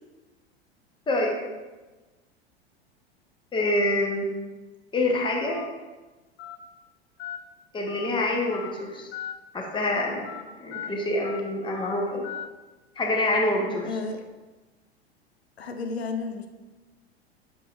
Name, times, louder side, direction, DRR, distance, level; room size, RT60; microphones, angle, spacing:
voice 1, 3.5-4.3 4.9-5.6 7.7-9.1 9.5-10.3 10.6-12.2 13.0-14.0, left 1 dB, 15° left, 0 dB, 1.1 m, -26 dB
Telephone, 5.5-5.7 6.4-6.6 7.2-7.4 7.9-8.1 8.5-8.7 9.1-9.3 9.7-9.9 10.3-10.4 10.7-10.9 11.2-11.4 11.7-11.9 12.2-12.5, left 11 dB, 35° left, 0.6 m, -38 dB
voice 2, 13.8-14.2 15.6-16.5, left 4 dB, 75° left, 5 dB, 0.7 m, -32 dB
7.0 x 5.3 x 2.6 m, 1.2 s
figure-of-eight pair, 85°, 32 cm